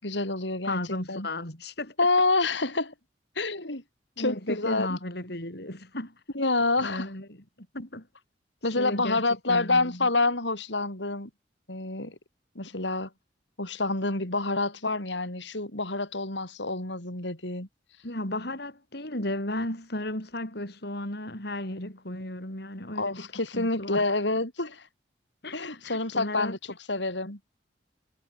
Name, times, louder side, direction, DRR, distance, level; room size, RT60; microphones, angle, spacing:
voice 1, 0.0-0.8 1.1-1.3 2.0-2.9 3.4-3.8 4.2-5.0 6.3-7.1 8.6-11.3 11.7-12.2 12.5-13.1 13.6-17.7 22.9-24.9 25.5-27.4, left 3 dB, 80° left, 6.4 m, -28 dB
voice 2, 0.6-1.9 4.2-6.1 6.8-7.3 7.6-8.1 8.8-10.1 18.0-23.3 23.5-24.0 25.4-26.6, left 1 dB, 60° left, 7.7 m, -34 dB
head